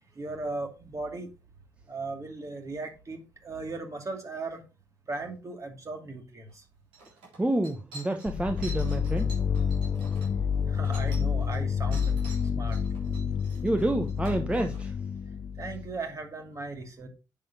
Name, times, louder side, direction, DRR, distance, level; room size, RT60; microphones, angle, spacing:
voice 1, 0.2-1.3 1.9-4.6 5.1-6.6 10.7-12.1 12.5-12.8 15.6-17.1, right 3 dB, 35° right, 2.4 m, -37 dB
sound 1, 6.5-6.6 6.9-11.6 11.9-14.8, right 2 dB, 70° right, 3.6 m, -48 dB
voice 2, 7.4-9.3 13.6-14.9, right 1 dB, 15° right, 1.1 m, -28 dB
sound 2, 8.3-16.0, left 6 dB, 40° left, 0.5 m, -29 dB
9.9 x 6.7 x 2.8 m
figure-of-eight pair, 45°, 9 cm